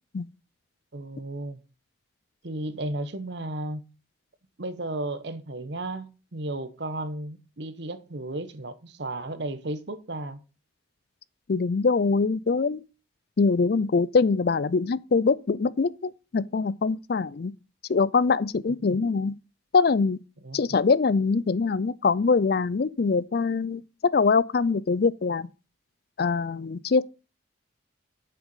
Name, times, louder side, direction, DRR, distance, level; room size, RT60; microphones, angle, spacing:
voice 1, 0.9-1.6 2.4-3.8 4.6-10.4 20.4-20.8, right 2 dB, 60° right, 1.0 m, -34 dB
voice 2, 11.5-12.8 13.4-17.5 17.9-19.3 19.7-20.2 20.5-23.8 24.1-25.5 26.2-27.0, left 4 dB, 55° left, 0.4 m, -23 dB
8.1 x 6.9 x 5.5 m
head